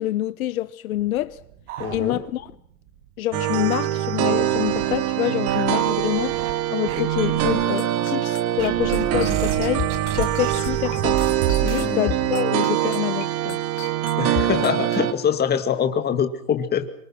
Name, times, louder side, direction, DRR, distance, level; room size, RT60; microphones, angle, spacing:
voice 1, 0.0-1.4 1.9-2.5 3.2-6.4 6.7-11.2 11.6-13.6, left 14 dB, 75° left, 1.0 m, -26 dB
sound 1, 1.0-2.5 2.9-3.0 3.3-3.4 4.0-5.0 5.5-6.5 6.9-7.5 8.6-11.9, right 10 dB, 60° right, 5.1 m, -31 dB
voice 2, 1.8-2.2 11.8-12.1 14.2-16.9, left 8 dB, 25° left, 2.3 m, -24 dB
sound 2, 3.3-15.1, right 12 dB, 35° right, 1.7 m, -23 dB
sound 3, 7.8-15.0, left 14 dB, 40° left, 3.1 m, -33 dB
26.0 x 24.5 x 6.1 m
hypercardioid pair, 125°, 42 cm